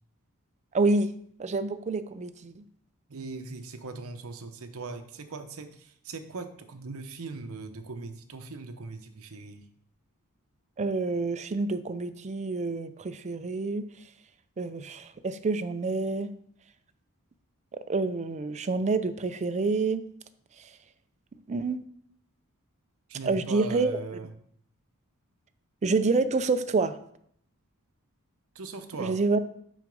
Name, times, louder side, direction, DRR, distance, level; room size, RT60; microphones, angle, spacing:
voice 1, 0.7-1.1 1.4-2.6 10.8-13.9 14.6-16.3 17.7-20.0 20.6-20.7 21.5-21.8 23.2-24.0 25.8-27.0 29.0-29.4, right 3 dB, 30° right, 11 dB, 0.4 m, -27 dB
voice 2, 3.1-9.7 23.1-24.3 28.5-29.2, right 3 dB, 65° right, 8 dB, 0.8 m, -40 dB
6.2 x 4.7 x 5.3 m, 0.68 s
head